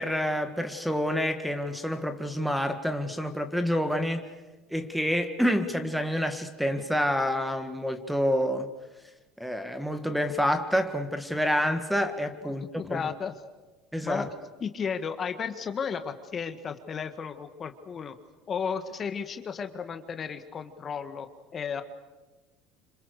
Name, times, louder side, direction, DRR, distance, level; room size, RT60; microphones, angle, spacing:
voice 1, 0.0-4.3 4.7-8.7 9.4-13.0 13.9-14.3, equal, ahead, 8 dB, 1.9 m, -28 dB
voice 2, 12.4-13.3 14.0-14.3 14.6-18.2 18.5-21.3 21.5-21.8, left 6 dB, 35° left, 8 dB, 1.8 m, -34 dB
26.5 x 25.5 x 6.7 m, 1.2 s
supercardioid pair, 100°, 0 cm